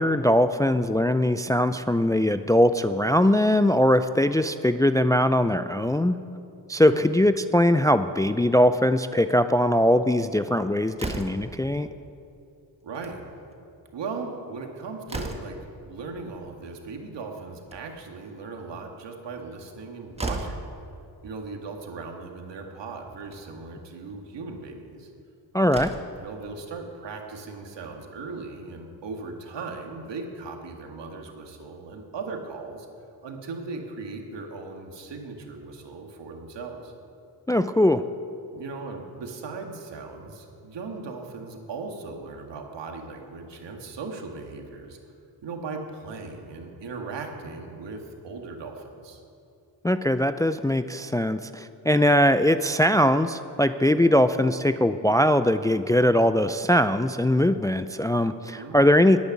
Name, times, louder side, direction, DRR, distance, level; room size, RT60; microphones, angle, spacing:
voice 1, 0.0-6.2 6.7-11.9 25.5-25.9 37.5-38.0 49.8-59.2, left 1 dB, 10° left, 11 dB, 0.4 m, -21 dB
Slam, 10.9-11.6 12.8-13.2 13.5-13.6 13.9-14.0 14.5-15.7 17.4-18.1 19.7-19.8 20.1-20.7 21.8-21.9 22.3-22.4 23.2-23.4 25.1-25.2 25.6-26.2, right 2 dB, 15° right, 1.5 m, -35 dB
voice 2, 12.8-13.3 13.9-15.6 15.9-20.7 21.2-25.1 26.2-32.9 33.2-36.9 38.5-45.0 45.4-49.2 58.5-58.8, right 4 dB, 75° right, 3 dB, 2.0 m, -38 dB
11.0 x 9.4 x 9.9 m, 2.6 s
cardioid pair, 75°, 43 cm